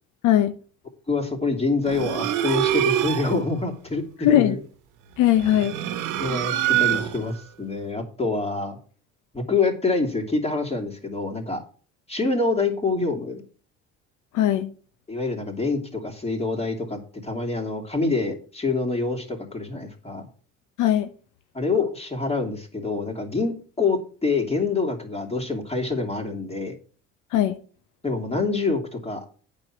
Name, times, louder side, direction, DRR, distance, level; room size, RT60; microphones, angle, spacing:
voice 1, 0.2-0.6 4.2-4.5 5.2-5.7 14.3-14.7 20.8-21.1 27.3-27.6, left 12 dB, 65° left, 10 dB, 0.8 m, -19 dB
voice 2, 1.1-4.6 6.2-8.8 9.3-11.6 12.1-13.4 15.1-20.3 21.5-26.7 28.0-29.3, left 3 dB, 20° left, 2 dB, 2.8 m, -26 dB
sound 1, 1.9-3.4 5.3-7.4, right 11 dB, 70° right, 1.2 m, -25 dB
8.8 x 6.3 x 6.1 m, 0.40 s
supercardioid pair, 70°, 32 cm